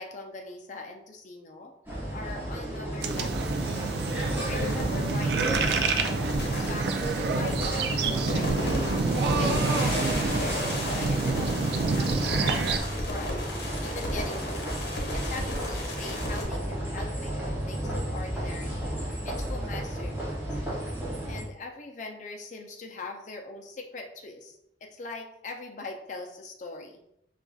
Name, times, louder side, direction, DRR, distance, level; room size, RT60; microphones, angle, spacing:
voice 1, 0.0-1.7 2.1-3.7 4.4-6.9 7.3-14.7 15.1-20.1 20.5-20.6 21.3-27.0, left 3 dB, 40° left, 2 dB, 0.5 m, -41 dB
sound 1, 1.9-21.4, right 1 dB, 10° right, 0.7 m, -33 dB
sound 2, 3.0-12.8, right 4 dB, 60° right, 0.3 m, -28 dB
sound 3, 4.5-16.4, left 1 dB, 55° left, 0.8 m, -34 dB
5.2 x 2.4 x 2.3 m, 0.77 s
head